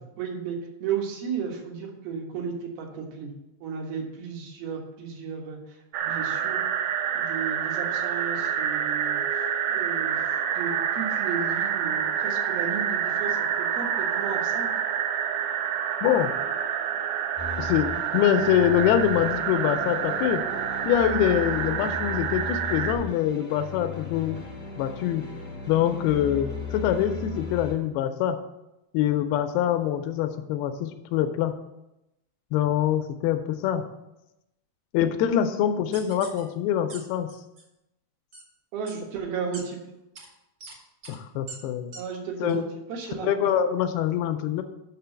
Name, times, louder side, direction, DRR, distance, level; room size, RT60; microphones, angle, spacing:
voice 1, 0.2-3.3 3.6-5.6 6.0-6.6 7.1-10.2 10.5-14.7 38.7-39.8 41.9-43.5, right 6 dB, 70° right, 0 dB, 3.2 m, -34 dB
sound 1, 5.9-22.9, right 8 dB, 85° right, 2.8 m, -28 dB
voice 2, 16.0-16.3 17.6-20.4 20.9-24.4 24.8-25.2 25.7-28.4 28.9-31.5 32.5-33.8 34.9-37.3 41.1-41.9 42.4-42.6 43.2-44.6, left 10 dB, 80° left, 8 dB, 2.4 m, -24 dB
sound 2, 17.4-27.7, left 4 dB, 30° left, 0.7 m, -37 dB
sound 3, 35.9-36.4 36.9-37.0 37.3-37.6 38.3-38.4 38.9-39.0 39.5-39.6 40.1-40.3 40.6-40.7 41.0-41.2 41.5-41.6 41.9-42.0 42.5-42.6, right 3 dB, 45° right, 2.3 m, -42 dB
6.7 x 6.2 x 6.8 m, 0.92 s
omnidirectional pair, 4.7 m